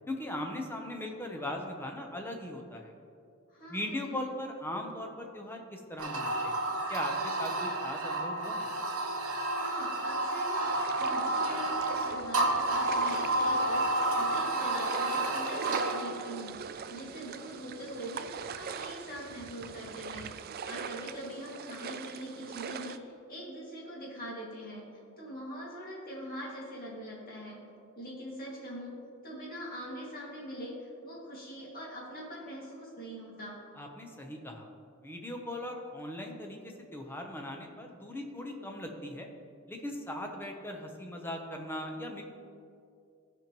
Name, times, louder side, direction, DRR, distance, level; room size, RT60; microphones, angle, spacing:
voice 1, 0.1-2.9 3.7-6.6 6.9-8.7 33.8-34.7 35.0-39.3 39.7-42.2, left 1 dB, 10° left, 2 dB, 0.7 m, -39 dB
voice 2, 3.5-4.2 9.5-20.4 20.7-24.9 25.2-27.6 28.0-29.0 29.2-33.6, equal, 40° left, -4 dB, 2.1 m, -42 dB
sound 1, 6.0-16.1, right 2 dB, 70° right, 0.9 m, -30 dB
sound 2, 10.6-23.0, right 6 dB, 45° right, 0.3 m, -42 dB
14.5 x 5.3 x 3.0 m, 2.5 s
head